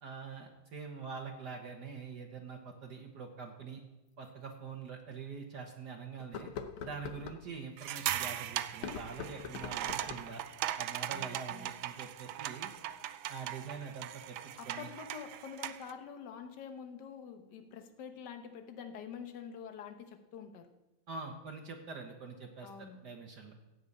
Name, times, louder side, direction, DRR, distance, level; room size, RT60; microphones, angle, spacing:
voice 1, 0.0-3.8 4.2-6.5 6.8-10.4 10.8-12.7 13.3-14.4 14.6-14.9 21.1-23.5, right 5 dB, 55° right, 3 dB, 1.6 m, -45 dB
sound 1, 4.2-4.3 4.9-5.0 6.2-7.4 8.7-10.4, left 7 dB, 85° left, 1.8 m, -43 dB
sound 2, 7.8-15.9, right 12 dB, 75° right, 1.3 m, -39 dB
voice 2, 11.1-11.7 14.6-20.7 22.6-23.0, left 7 dB, 60° left, 7 dB, 1.6 m, -47 dB
15.5 x 5.7 x 8.5 m, 1.0 s
omnidirectional pair, 2.3 m